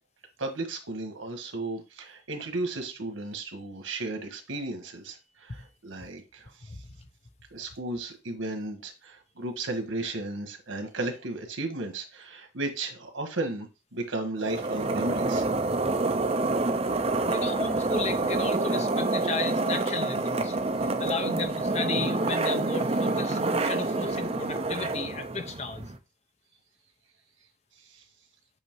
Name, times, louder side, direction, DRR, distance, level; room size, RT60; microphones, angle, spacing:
voice 1, 0.4-6.5 7.5-15.4 27.9-28.0, right 2 dB, 90° right, 1.4 m, -34 dB
sound 1, 14.4-26.0, right 2 dB, 30° right, 0.6 m, -27 dB
voice 2, 17.2-20.6 21.0-25.9, left 4 dB, 35° left, 0.7 m, -34 dB
8.1 x 2.8 x 4.6 m
head